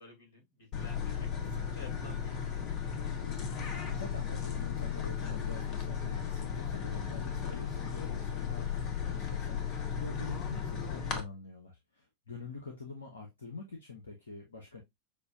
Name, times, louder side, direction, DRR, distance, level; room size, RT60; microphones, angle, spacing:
voice 1, 0.0-2.6, left 3 dB, 55° left, 2.4 m, -53 dB
sound 1, 0.7-11.2, left 7 dB, 35° left, 1.0 m, -35 dB
voice 2, 3.1-3.5 3.9-14.8, left 4 dB, 75° left, 0.9 m, -46 dB
6.5 x 2.6 x 2.4 m
figure-of-eight pair, 90°, 0 cm